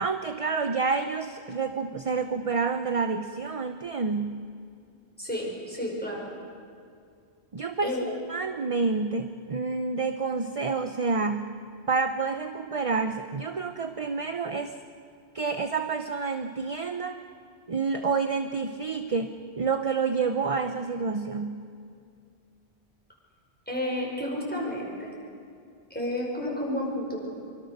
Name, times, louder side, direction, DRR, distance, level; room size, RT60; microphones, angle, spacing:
voice 1, 0.0-4.4 7.5-8.0 8.3-11.5 11.9-14.8 15.3-17.2 17.7-21.6, right 4 dB, 35° right, 7 dB, 0.7 m, -28 dB
voice 2, 5.2-6.3 7.8-8.1 23.7-25.1 25.9-27.3, left 1 dB, 10° left, -3 dB, 5.6 m, -31 dB
25.5 x 24.5 x 6.7 m, 2.3 s
omnidirectional pair, 1.1 m